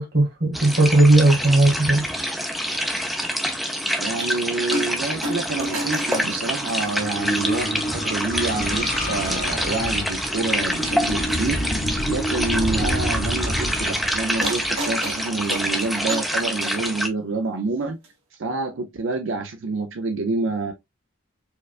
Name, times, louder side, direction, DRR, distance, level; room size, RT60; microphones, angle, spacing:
voice 1, 0.0-2.0, right 2 dB, 50° right, 1.4 m, -17 dB
sound 1, 0.5-17.1, equal, ahead, 0.5 m, -26 dB
voice 2, 4.0-11.7 12.1-18.0 18.3-20.7, right 3 dB, 65° right, 0.5 m, -27 dB
sound 2, 4.2-4.3 4.7-5.0 5.2-7.4 8.2-8.3 9.4-9.5 9.8-9.9 11.1-11.7 14.4-16.8 18.0-18.1, right 1 dB, 85° right, 1.5 m, -32 dB
sound 3, 5.9-15.4, equal, 35° left, 0.9 m, -29 dB
4.5 x 2.3 x 2.3 m
head